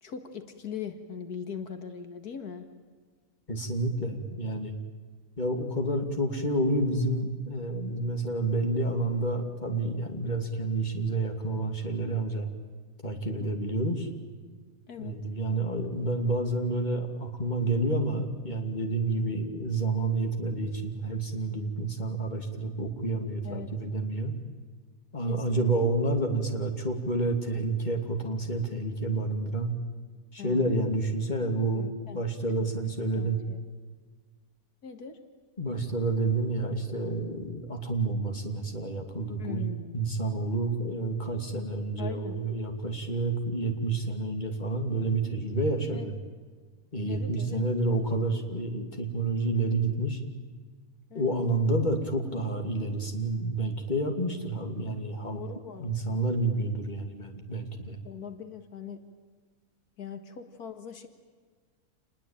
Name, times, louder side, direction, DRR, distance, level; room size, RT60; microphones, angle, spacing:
voice 1, 0.0-2.7 13.4-13.5 14.9-15.2 23.4-23.7 25.3-25.7 30.4-30.7 31.7-32.2 32.6-32.7 33.1-33.6 34.8-35.2 39.4-40.1 42.0-42.4 45.9-46.2 47.1-47.6 51.1-51.4 55.3-56.2 58.0-59.0 60.0-61.1, left 7 dB, 85° left, 8 dB, 2.2 m, -41 dB
voice 2, 3.5-4.7 5.4-12.5 13.0-14.1 15.0-24.3 25.1-29.7 30.3-31.9 32.1-33.4 35.6-46.1 46.9-50.2 51.1-55.4 55.8-58.0, right 2 dB, 30° left, 4 dB, 3.0 m, -29 dB
28.0 x 20.5 x 9.1 m, 1.5 s
omnidirectional pair, 1.6 m